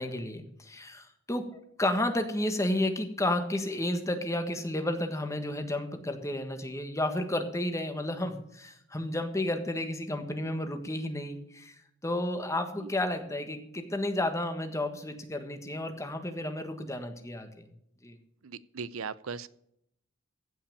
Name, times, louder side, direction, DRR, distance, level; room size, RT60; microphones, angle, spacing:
voice 1, 0.0-11.7 12.0-17.7 18.0-18.2, left 1 dB, 15° left, 6 dB, 1.5 m, -32 dB
voice 2, 18.4-19.5, right 5 dB, 90° right, 17 dB, 0.6 m, -38 dB
15.5 x 5.8 x 7.0 m, 0.75 s
head